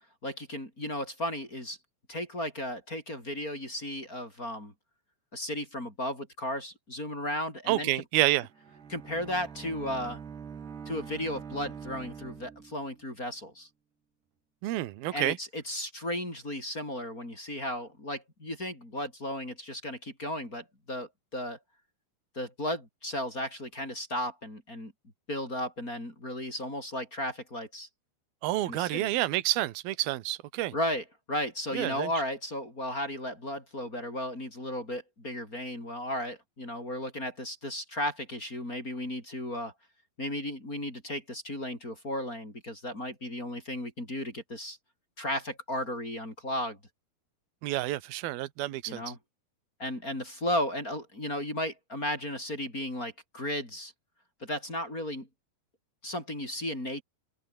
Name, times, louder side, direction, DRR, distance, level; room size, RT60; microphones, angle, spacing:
voice 1, 0.2-1.8 2.1-4.7 5.3-7.9 8.9-10.2 10.9-13.7 15.1-21.6 22.4-24.9 25.3-27.9 28.7-29.1 30.7-39.7 40.2-44.8 45.2-46.8 48.9-49.2 49.8-53.9 54.4-55.3 56.0-57.0, left 1 dB, 20° left, 7.3 m, -35 dB
voice 2, 7.7-8.5 14.6-15.4 28.4-30.7 31.7-32.1 47.6-49.0, right 16 dB, 70° right, 3.1 m, -29 dB
Bowed string instrument, 8.4-13.2, right 6 dB, 90° right, 6.5 m, -44 dB
omnidirectional pair, 4.6 m